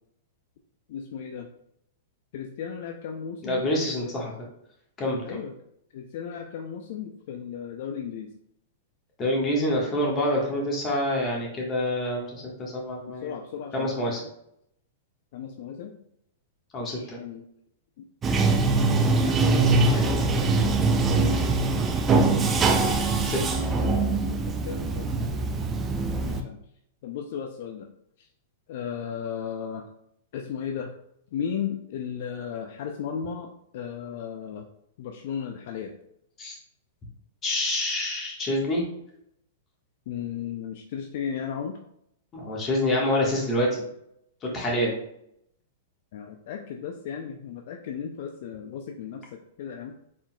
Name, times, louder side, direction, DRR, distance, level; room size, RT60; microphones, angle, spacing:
voice 1, 0.9-1.5 2.3-3.7 4.0-4.2 5.2-5.5 5.9-8.3 13.2-14.3 15.3-16.0 16.8-17.4 18.5-21.0 24.5-25.3 26.2-26.6 27.0-27.9 28.2-28.3 28.7-29.8 30.3-30.9 31.3-34.7 35.0-35.9 40.1-41.8 46.1-49.9, left 7 dB, 60° left, 4 dB, 0.4 m, -35 dB
voice 2, 3.4-4.3 5.0-5.4 9.2-13.3 13.7-14.2 16.7-17.2 23.2-23.6 36.4-36.5 37.4-38.8 42.3-43.8 44.4-44.9, left 1 dB, 25° left, -2 dB, 1.3 m, -27 dB
Bathtub (filling or washing), 18.2-26.4, right 3 dB, 20° right, 0.5 m, -23 dB
4.3 x 3.7 x 2.2 m, 0.75 s
hypercardioid pair, 120°, 0 cm